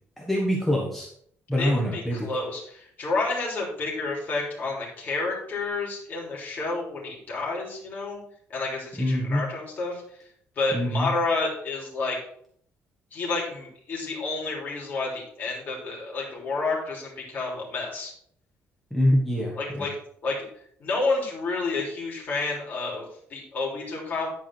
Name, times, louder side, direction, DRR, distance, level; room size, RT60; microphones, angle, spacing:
voice 1, 0.2-1.1 1.5-2.3 9.0-9.4 10.7-11.1 18.9-19.9, equal, 5° left, -3 dB, 1.3 m, -25 dB
voice 2, 1.6-8.2 8.5-10.0 10.6-12.2 13.1-18.1 19.6-19.9 20.2-20.4 20.8-24.3, left 3 dB, 40° left, -3 dB, 3.3 m, -30 dB
10.5 x 4.7 x 4.5 m, 0.65 s
cardioid pair, 160°, 5 cm